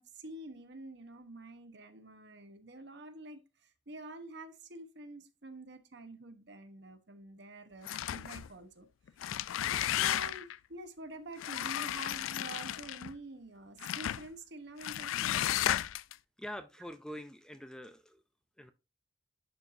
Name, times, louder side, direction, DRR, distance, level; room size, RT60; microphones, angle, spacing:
voice 1, 0.0-8.9 9.9-15.5, right 2 dB, 60° right, 1.0 m, -48 dB
sound 1, 7.8-8.5 9.1-10.6 11.4-13.1 13.8-14.3 14.8-16.1, left 12 dB, 85° left, 0.3 m, -33 dB
voice 2, 16.4-18.2 18.6-18.7, equal, 5° left, 0.4 m, -45 dB
11.0 x 4.5 x 2.7 m
head